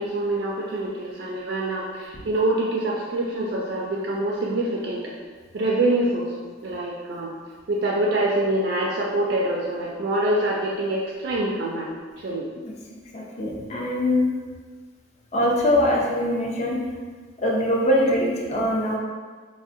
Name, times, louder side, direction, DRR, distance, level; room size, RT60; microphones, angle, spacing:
voice 1, 0.0-5.1 5.5-6.4 6.6-7.3 7.7-11.9 12.2-12.5, right 1 dB, 65° right, -2 dB, 0.3 m, -25 dB
voice 2, 13.1-14.3 15.3-16.8 17.4-19.0, left 1 dB, 35° left, -2 dB, 0.4 m, -22 dB
3.4 x 2.1 x 2.5 m, 1.5 s
head